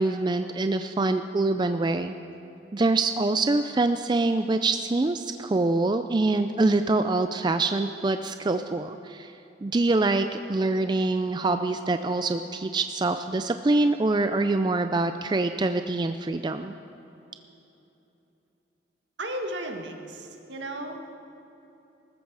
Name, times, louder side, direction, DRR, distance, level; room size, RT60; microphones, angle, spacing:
voice 1, 0.0-2.1 2.7-9.3 9.6-16.7, right 2 dB, 25° right, 8 dB, 0.4 m, -25 dB
voice 2, 19.2-21.0, right 1 dB, 75° right, 4 dB, 1.6 m, -34 dB
21.0 x 14.0 x 4.8 m, 3.0 s
head